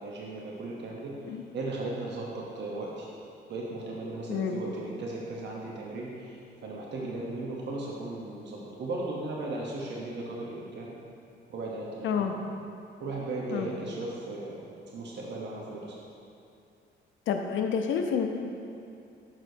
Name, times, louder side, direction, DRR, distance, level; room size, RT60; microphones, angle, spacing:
voice 1, 0.0-1.1 1.5-3.1 3.5-10.9 11.5-12.3 13.0-14.7 14.9-15.9, right 2 dB, 60° right, -3 dB, 0.9 m, -36 dB
voice 2, 17.3-18.3, left 7 dB, 80° left, 4 dB, 0.6 m, -28 dB
6.4 x 5.9 x 2.7 m, 2.6 s
cardioid pair, 90°, 20 cm